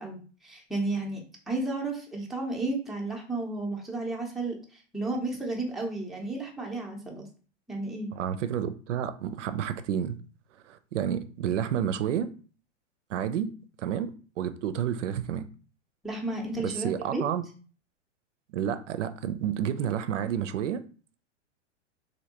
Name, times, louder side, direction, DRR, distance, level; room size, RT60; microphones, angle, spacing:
voice 1, 0.0-7.2 7.7-8.1 16.0-17.2, right 2 dB, ahead, 0.6 m, -33 dB
voice 2, 8.1-10.2 10.7-12.3 13.1-13.5 13.8-14.1 14.4-15.5 16.6-17.4 18.5-20.8, right 9 dB, 80° right, 0.5 m, -30 dB
3.3 x 2.7 x 2.8 m
hypercardioid pair, 120°, 36 cm